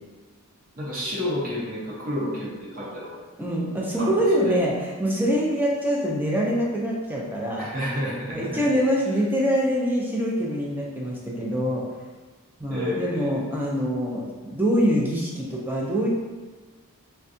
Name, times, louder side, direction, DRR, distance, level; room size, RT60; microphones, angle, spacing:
voice 1, 0.8-3.2 4.0-4.6 7.6-8.6 12.7-13.4, left 1 dB, 40° right, -7 dB, 0.8 m, -30 dB
voice 2, 3.4-7.7 8.3-11.8 12.6-16.1, equal, 10° right, -4 dB, 0.4 m, -24 dB
3.5 x 2.2 x 2.6 m, 1.3 s
head